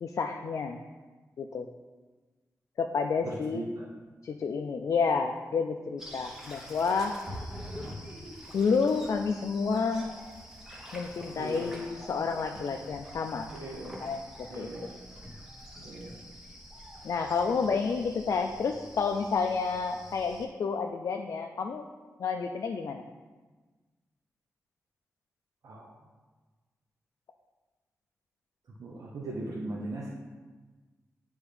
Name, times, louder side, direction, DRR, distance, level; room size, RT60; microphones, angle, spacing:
voice 1, 0.0-0.8 1.4-1.7 2.8-3.6 4.2-7.2 8.5-10.1 10.9-13.5 14.0-14.9 17.0-21.9 22.2-23.0, left 5 dB, 65° left, 4 dB, 0.3 m, -30 dB
voice 2, 3.2-3.9 11.4-11.7 13.5-14.0 14.5-15.0 15.8-16.2 25.6-25.9 28.8-30.1, right 2 dB, 80° right, -4 dB, 0.8 m, -39 dB
sound 1, 6.0-20.5, equal, 10° right, 1.0 m, -46 dB
9.6 x 3.5 x 3.3 m, 1.3 s
wide cardioid pair, 150°, 6 cm